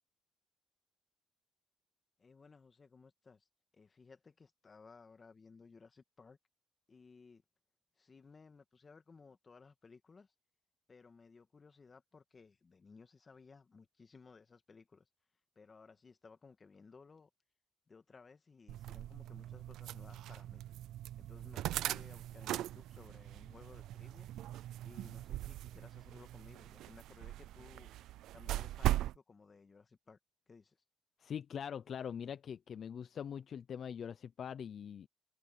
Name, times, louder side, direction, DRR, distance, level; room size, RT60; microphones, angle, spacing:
voice 1, 2.2-3.5 3.7-6.4 6.9-7.4 8.0-10.3 10.9-15.1 15.6-17.3 17.9-20.6 21.2-24.3 24.8-27.9 28.3-30.2 30.5-30.8, left 4 dB, 35° left, 1.9 m, -59 dB
sound 1, 18.7-29.2, right 14 dB, 85° right, 0.5 m, -40 dB
voice 2, 31.2-35.1, left 8 dB, 60° left, 0.7 m, -43 dB
cardioid pair, 90°, 0 cm